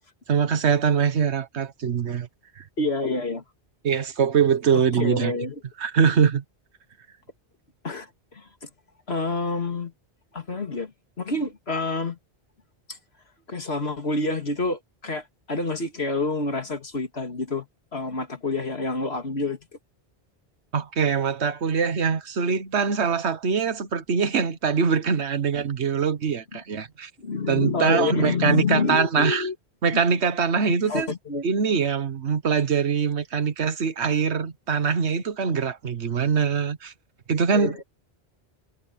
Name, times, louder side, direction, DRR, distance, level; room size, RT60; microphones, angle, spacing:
voice 1, 0.3-2.3 2.6-2.7 3.8-5.3 5.8-6.4 20.7-27.1 27.5-29.5 29.8-31.1 31.4-36.9 37.3-37.8, right 6 dB, 85° right, 1.5 m, -23 dB
voice 2, 2.8-3.4 4.7-5.6 7.8-8.7 9.1-9.9 10.3-10.9 11.2-12.2 12.9-13.0 13.5-19.6 26.5-26.6 27.2-29.5 30.7-31.4 37.5-37.8, left 3 dB, 70° left, 2.8 m, -28 dB
omnidirectional pair, 1.1 m